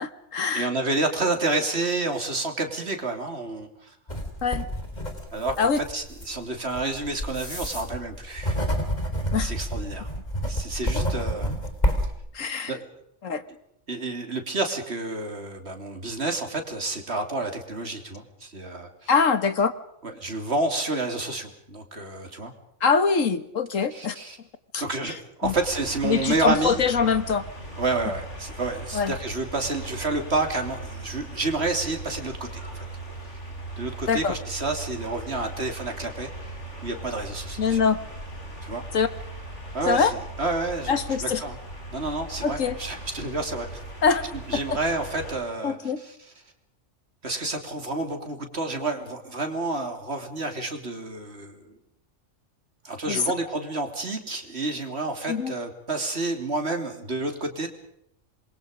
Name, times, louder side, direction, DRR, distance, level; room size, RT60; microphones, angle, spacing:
voice 1, 0.0-0.7 4.4-4.7 5.6-5.8 9.3-9.5 12.3-12.8 13.2-13.4 19.1-19.7 22.8-24.2 24.7-25.2 25.4-25.5 26.0-27.4 28.9-29.1 34.1-34.4 37.6-38.0 38.9-39.1 39.8-40.2 40.9-41.4 42.4-42.8 44.0-44.6 45.6-46.0 53.1-53.2 55.3-55.5, left 5 dB, 80° left, 12 dB, 1.9 m, -23 dB
voice 2, 0.5-3.9 5.3-8.6 9.4-10.1 10.5-11.6 12.7-12.8 13.9-19.1 20.0-22.5 23.8-24.4 24.8-26.8 27.8-32.9 33.3-33.4 33.8-36.3 36.8-37.8 38.6-38.8 39.7-40.1 40.4-41.6 41.9-43.8 44.5-46.2 47.2-51.8 52.8-57.7, right 2 dB, 55° right, 5 dB, 3.4 m, -29 dB
sound 1, 4.1-12.1, equal, 35° left, 4.2 m, -29 dB
sound 2, 25.4-45.4, right 2 dB, 60° left, 5.7 m, -39 dB
27.0 x 22.5 x 5.2 m, 0.75 s
omnidirectional pair, 1.3 m